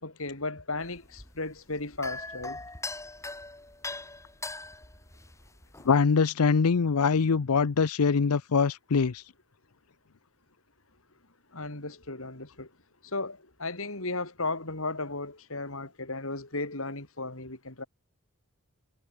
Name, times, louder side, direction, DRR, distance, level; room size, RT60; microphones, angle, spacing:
voice 1, 0.0-2.6 11.5-12.7 13.0-17.8, left 2 dB, 65° left, 4.2 m, -35 dB
sound 1, 0.8-5.9, left 3 dB, 15° left, 6.8 m, -41 dB
voice 2, 5.8-9.2, left 5 dB, 85° left, 0.6 m, -23 dB
head